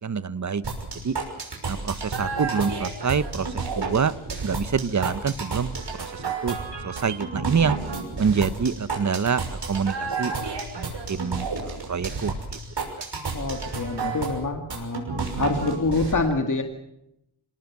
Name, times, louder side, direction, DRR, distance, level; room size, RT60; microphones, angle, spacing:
voice 1, 0.0-0.6 1.0-1.2 1.6-4.1 4.4-6.6 6.8-7.8 8.2-12.6, right 6 dB, 35° right, 15 dB, 0.9 m, -26 dB
sound 1, 0.6-16.1, right 4 dB, 60° right, 6.2 m, -31 dB
voice 2, 13.3-15.1 15.3-16.6, left 3 dB, 40° left, 4 dB, 2.1 m, -26 dB
27.0 x 18.5 x 7.3 m, 0.82 s
wide cardioid pair, 140°, 48 cm